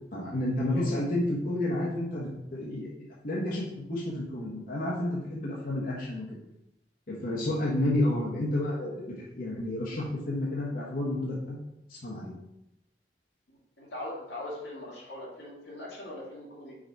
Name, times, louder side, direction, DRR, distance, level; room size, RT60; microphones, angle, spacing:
voice 1, 0.1-6.2 7.1-11.6 11.9-12.3, left 1 dB, 55° left, -5 dB, 1.2 m, -31 dB
voice 2, 13.8-16.8, left 1 dB, 85° left, -4 dB, 2.0 m, -40 dB
5.0 x 4.1 x 4.6 m, 0.88 s
head